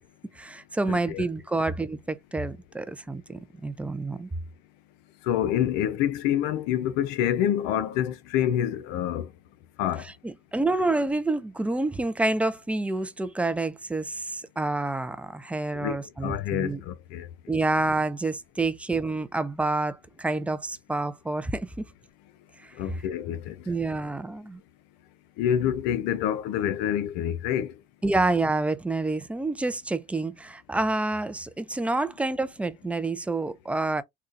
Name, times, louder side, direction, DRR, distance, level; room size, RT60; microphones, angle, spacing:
voice 1, 0.4-4.3 10.2-16.8 17.5-21.9 22.6-22.7 23.7-24.6 28.0-34.0, right 2 dB, 5° right, 0.3 m, -28 dB
voice 2, 0.9-1.2 5.2-9.3 9.8-10.1 15.7-17.3 22.7-23.7 25.4-27.8, left 10 dB, 70° left, 0.6 m, -27 dB
3.8 x 2.3 x 2.4 m
supercardioid pair, 115°, 17 cm